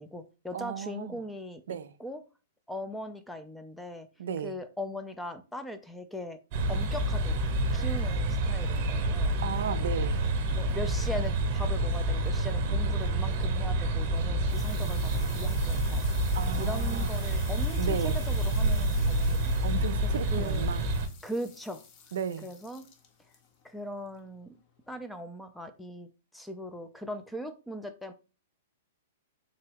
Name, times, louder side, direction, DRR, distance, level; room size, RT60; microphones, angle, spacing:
voice 1, 0.0-1.6 2.0-2.2 2.7-4.1 4.4-6.4 6.7-9.7 10.5-16.0 16.6-19.5 20.0-20.7 21.2-21.8 22.4-22.8 23.6-24.6 24.9-28.1, left 1 dB, 5° left, 0.4 m, -39 dB
voice 2, 0.5-1.2 1.7-1.9 4.2-4.6 9.4-10.3 16.3-17.1 17.8-18.2 19.6-20.9 22.1-22.5, right 8 dB, 75° right, 0.3 m, -34 dB
sound 1, 6.5-21.1, right 1 dB, 45° right, 0.9 m, -28 dB
sound 2, 14.0-25.0, left 6 dB, 35° left, 0.7 m, -51 dB
3.7 x 2.2 x 3.3 m
hypercardioid pair, 125°, 0 cm